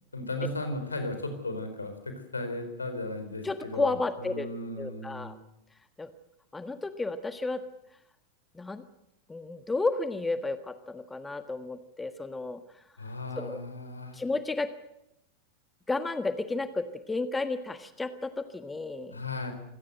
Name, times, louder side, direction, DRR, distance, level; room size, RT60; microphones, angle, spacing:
voice 1, 0.1-5.3 13.0-14.2 19.1-19.5, left 2 dB, 80° left, 8 dB, 4.4 m, -36 dB
voice 2, 3.4-4.5 4.8-5.4 6.0-6.1 6.5-7.6 8.5-8.8 9.3-12.6 13.4-13.6 14.1-14.7 15.9-19.2, left 3 dB, 10° left, 10 dB, 1.4 m, -32 dB
26.0 x 18.0 x 8.0 m, 0.83 s
figure-of-eight pair, 90°, 0 cm